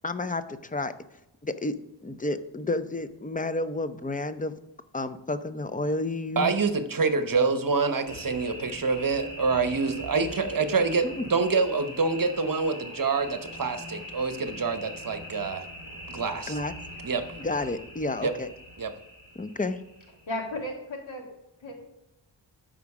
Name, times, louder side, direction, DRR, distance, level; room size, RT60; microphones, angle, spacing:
voice 1, 0.0-0.9 1.4-1.7 2.0-4.5 4.9-6.5 16.5-16.7 17.4-18.5 19.4-19.8, left 2 dB, 20° left, 11 dB, 0.7 m, -30 dB
voice 2, 6.4-15.7 16.1-16.6 17.0-17.3 18.2-18.3 18.8-18.9, right 4 dB, 45° right, 10 dB, 1.0 m, -26 dB
sound 1, 8.0-20.7, equal, 45° left, 2.3 m, -42 dB
voice 3, 20.3-21.3 21.6-21.7, left 1 dB, 90° left, 0 dB, 2.5 m, -34 dB
12.5 x 5.2 x 4.8 m, 0.90 s
wide cardioid pair, 70°, 45 cm